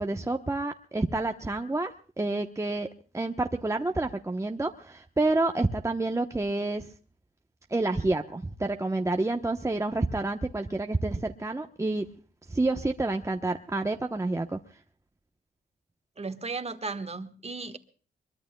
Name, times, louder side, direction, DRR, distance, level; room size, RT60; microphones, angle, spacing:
voice 1, 0.0-2.9 3.1-6.9 7.7-12.1 12.5-14.6, right 2 dB, 15° right, 4 dB, 1.0 m, -28 dB
voice 2, 16.2-17.8, right 4 dB, 35° right, 9 dB, 1.5 m, -35 dB
22.5 x 22.5 x 2.3 m, 0.39 s
cardioid pair, 85°, 19 cm